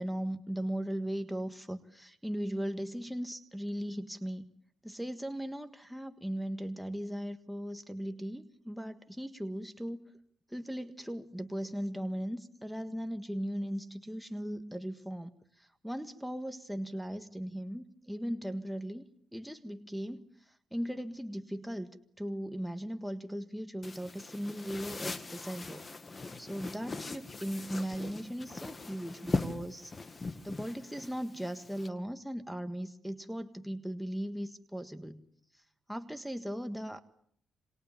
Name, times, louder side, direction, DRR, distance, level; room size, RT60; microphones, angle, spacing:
voice 1, 0.0-4.5 4.8-10.1 10.5-15.3 15.6-19.1 19.3-21.9 22.2-25.8 26.4-30.0 30.4-35.3 35.9-37.0, equal, ahead, 8 dB, 1.6 m, -38 dB
sound 1, 23.8-31.9, left 3 dB, 30° left, 2.0 m, -40 dB
28.0 x 26.5 x 7.2 m, 0.67 s
cardioid pair, 105°, 0 cm